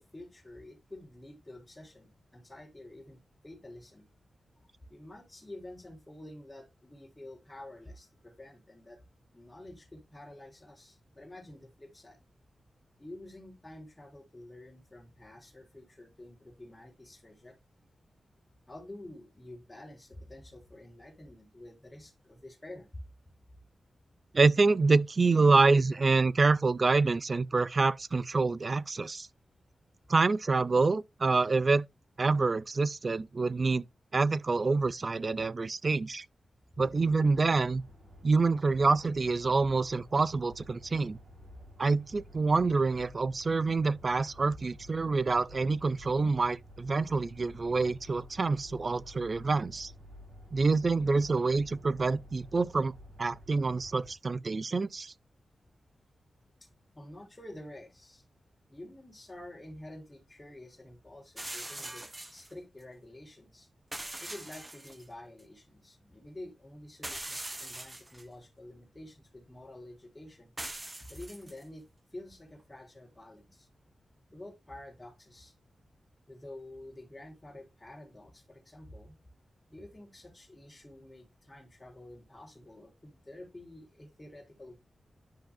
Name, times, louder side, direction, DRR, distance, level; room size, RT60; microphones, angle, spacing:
voice 1, 0.0-4.1 4.9-9.0 9.3-12.2 13.0-17.6 18.7-23.0 56.6-56.7 56.9-58.2 58.7-63.7 64.2-70.5 71.1-71.9 72.1-73.7 74.3-75.5 76.3-79.2 79.7-84.8, left 1 dB, 25° left, 3.3 m, -49 dB
voice 2, 24.3-29.3 30.1-31.8 32.2-33.9 34.1-36.3 36.8-37.8 38.2-41.2 41.8-49.9 50.5-52.9 53.2-55.1, right 3 dB, 45° right, 0.5 m, -26 dB
sound 1, 36.8-54.2, left 1 dB, 70° right, 5.8 m, -52 dB
sound 2, 61.4-62.5 63.9-65.0 65.4-65.5 67.0-68.2 70.6-71.6, right 1 dB, 20° right, 1.3 m, -42 dB
10.5 x 5.9 x 2.2 m
cardioid pair, 65°, 0 cm